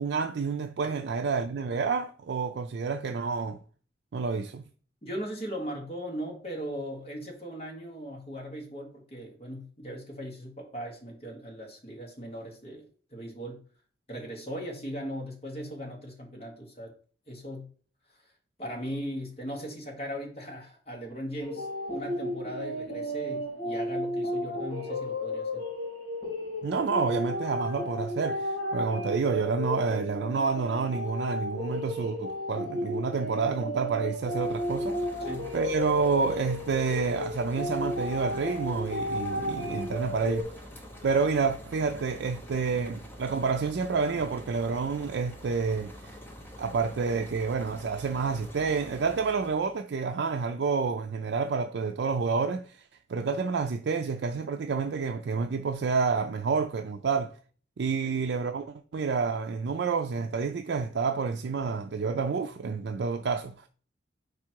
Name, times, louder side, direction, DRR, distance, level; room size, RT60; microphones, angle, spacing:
voice 1, 0.0-3.6 4.1-4.6 26.6-35.0 35.5-40.5 41.0-46.2 46.6-52.8 53.1-57.3 57.8-63.7, right 5 dB, 70° right, 0.4 m, -29 dB
voice 2, 5.0-12.8 13.1-13.6 14.1-16.9 17.3-17.7 18.6-25.6 35.2-35.5, equal, 35° left, 1.5 m, -38 dB
sound 1, 21.4-40.4, left 1 dB, 60° left, 3.1 m, -33 dB
sound 2, 34.0-49.8, equal, 10° left, 1.0 m, -46 dB
5.1 x 4.8 x 4.6 m
head